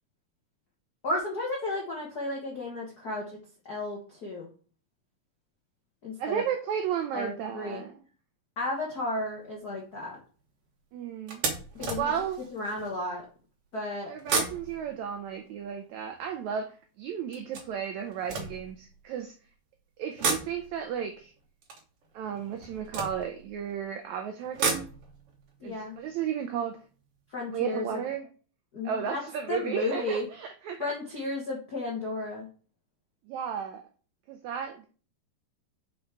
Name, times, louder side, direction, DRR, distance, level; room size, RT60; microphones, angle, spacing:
voice 1, 1.0-3.3 3.6-4.5 6.0-6.4 7.1-7.8 8.6-10.2 11.7-12.1 12.5-13.2 13.7-14.1 25.6-26.0 27.3-27.9 28.7-29.2 29.5-30.3 30.8-32.5, left 2 dB, 75° left, 0.8 m, -33 dB
voice 2, 6.2-8.0 10.9-11.4 12.0-12.4 14.1-19.3 20.0-21.3 22.1-24.9 25.6-26.8 27.5-28.2 28.8-30.9 33.3-33.8 34.3-34.9, right 8 dB, 85° right, 1.6 m, -33 dB
sound 1, 8.9-9.2 9.8-10.0 10.4-10.5 11.3-13.0 14.1-16.4 17.3-19.3 20.0-23.8 24.3-27.3 27.6-27.7 28.0-28.1, right 4 dB, 55° right, 1.8 m, -35 dB
5.4 x 5.1 x 4.5 m
omnidirectional pair, 4.0 m